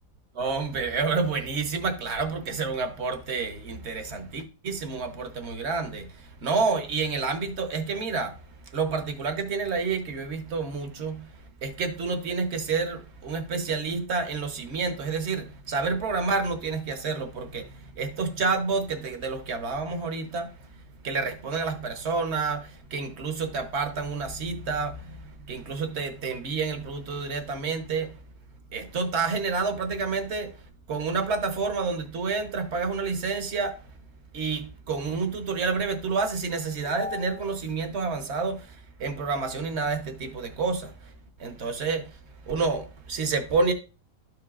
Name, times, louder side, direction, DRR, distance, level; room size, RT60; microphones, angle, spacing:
voice 1, 0.3-8.4 8.7-11.3 11.6-20.5 21.0-28.1 28.7-30.6 30.9-33.8 34.3-41.1 41.4-42.2 42.5-43.7, right 4 dB, 50° right, 1.0 m, -29 dB
12.5 x 4.7 x 2.4 m
omnidirectional pair, 1.8 m